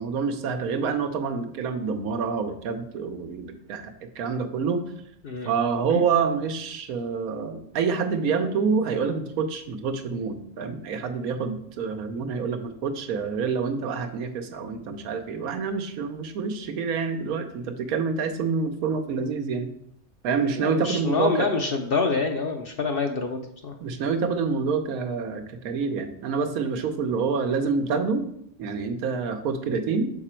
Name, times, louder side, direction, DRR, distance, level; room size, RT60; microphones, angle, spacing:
voice 1, 0.0-4.9 5.4-19.7 20.2-21.5 23.8-28.3 28.6-30.1, right 5 dB, 85° right, 7 dB, 1.2 m, -27 dB
voice 2, 20.6-23.7, left 4 dB, 55° left, 4 dB, 0.6 m, -26 dB
6.0 x 4.9 x 4.3 m, 0.71 s
omnidirectional pair, 1.5 m